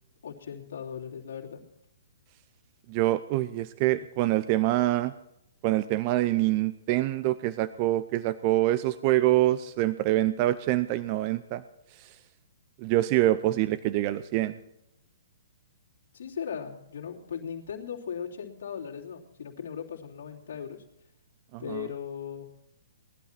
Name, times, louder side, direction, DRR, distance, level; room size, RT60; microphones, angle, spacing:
voice 1, 0.2-1.6 16.1-20.8 21.6-22.5, left 7 dB, 65° left, -1 dB, 3.1 m, -38 dB
voice 2, 2.9-5.1 5.6-11.6 12.0-12.1 12.8-14.6 21.5-21.8, right 15 dB, 35° right, 14 dB, 0.6 m, -25 dB
19.5 x 11.5 x 4.4 m, 0.84 s
figure-of-eight pair, 120°, 0 cm